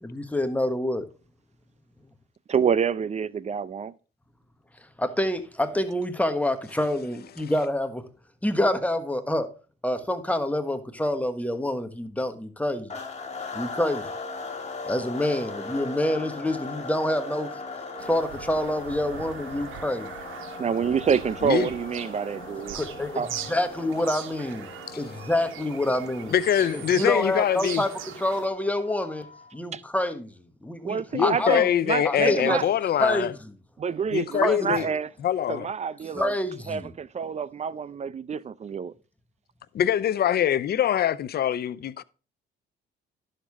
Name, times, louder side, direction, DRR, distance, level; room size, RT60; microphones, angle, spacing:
voice 1, 0.0-1.1 5.0-8.0 8.4-9.5 9.8-12.9 13.5-14.1 14.8-17.5 18.0-20.1 22.8-23.2 23.5-24.7 25.0-26.3 26.7-29.3 29.5-30.3 30.6-31.7 32.0-32.6 33.0-33.3 34.3-34.7 36.1-36.9, left 1 dB, 5° left, 1.3 m, -27 dB
voice 2, 2.5-3.9 20.6-22.8 23.2-23.3 29.7-29.8 30.8-32.6 33.8-35.1 35.5-36.3 36.7-38.9, right 7 dB, 35° right, 0.5 m, -27 dB
sound 1, 12.9-29.6, left 3 dB, 35° left, 2.1 m, -39 dB
Bird vocalization bird call bird song, 18.0-28.5, right 10 dB, 85° right, 1.1 m, -41 dB
voice 3, 26.3-27.8 31.1-33.3 34.1-34.9 35.2-35.7 39.7-42.0, left 10 dB, 55° left, 0.6 m, -24 dB
11.0 x 6.6 x 3.5 m
cardioid pair, 90°, 20 cm